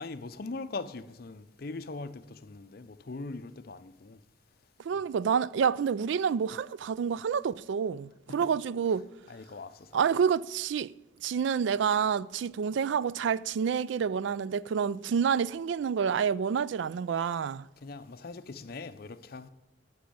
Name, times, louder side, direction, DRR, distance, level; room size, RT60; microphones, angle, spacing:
voice 1, 0.0-4.2 8.3-8.5 9.3-10.0 17.8-19.5, left 3 dB, 50° left, 0.6 m, -41 dB
voice 2, 4.8-9.0 9.9-10.9 11.2-17.7, right 7 dB, 70° right, 0.3 m, -28 dB
11.5 x 6.2 x 8.6 m
head